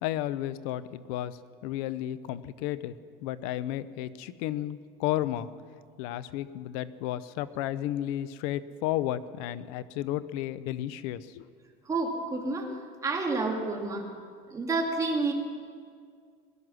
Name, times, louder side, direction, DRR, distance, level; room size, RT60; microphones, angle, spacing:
voice 1, 0.0-2.9 3.2-5.5 6.0-11.5, left 13 dB, 85° left, 16 dB, 0.7 m, -33 dB
voice 2, 11.9-12.7 13.0-14.0 14.5-15.3, right 3 dB, 20° right, 1 dB, 2.0 m, -29 dB
20.5 x 11.0 x 6.3 m, 2.1 s
cardioid pair, 145°, 18 cm